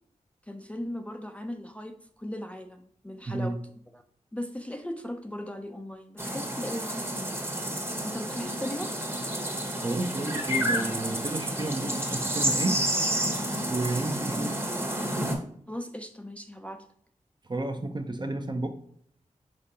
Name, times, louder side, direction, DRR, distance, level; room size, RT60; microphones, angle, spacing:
voice 1, 0.4-3.6 3.9-4.0 4.3-7.4 8.0-9.0 15.7-16.8, left 1 dB, 10° left, 5 dB, 0.4 m, -38 dB
voice 2, 3.3-3.6 9.8-12.8 13.7-14.5 17.4-18.7, right 2 dB, 35° right, 7 dB, 0.6 m, -31 dB
sound 1, 6.2-15.4, right 1 dB, 15° right, 1.0 m, -30 dB
5.1 x 3.6 x 2.7 m, 0.63 s
cardioid pair, 45°, 13 cm